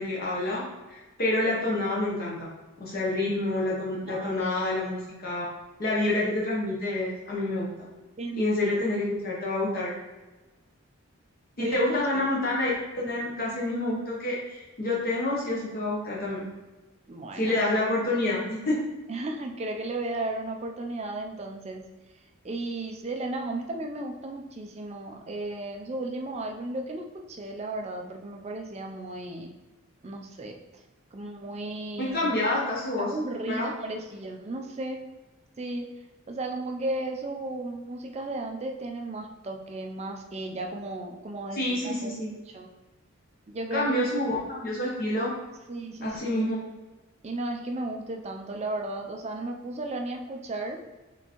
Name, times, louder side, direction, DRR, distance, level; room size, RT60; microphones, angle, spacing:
voice 1, 0.0-2.5 2.8-5.5 5.8-7.7 8.4-9.9 11.6-16.5 17.4-18.8 32.0-33.1 33.5-33.7 41.5-42.3 43.7-45.3 46.0-46.6, left 1 dB, 40° left, -5 dB, 0.8 m, -28 dB
voice 2, 4.1-4.6 8.2-8.8 11.6-12.3 17.1-17.6 19.1-21.8 22.4-29.5 30.0-30.6 31.1-32.3 33.0-35.0 35.6-35.9 36.3-42.1 42.5-42.7 43.5-44.0 45.7-46.5 47.2-50.8, right 2 dB, 30° right, 2 dB, 0.4 m, -35 dB
4.2 x 3.5 x 2.9 m, 1.2 s
head